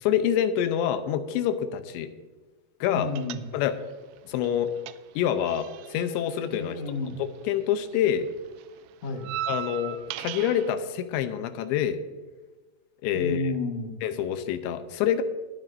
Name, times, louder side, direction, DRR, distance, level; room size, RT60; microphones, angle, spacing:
voice 1, 0.0-2.1 2.8-3.1 3.5-3.7 4.2-4.7 5.2-6.8 7.2-8.3 9.5-12.0 13.0-13.5 14.0-15.2, left 9 dB, 90° left, 10 dB, 2.9 m, -26 dB
voice 2, 2.9-3.4 6.5-7.2 9.0-9.3 13.1-14.0, left 3 dB, 60° left, 3 dB, 1.8 m, -31 dB
sound 1, 3.2-3.9 4.2-7.6 7.8-10.7, right 11 dB, 85° right, 2.5 m, -38 dB
22.0 x 9.0 x 2.6 m, 1.3 s
omnidirectional pair, 5.1 m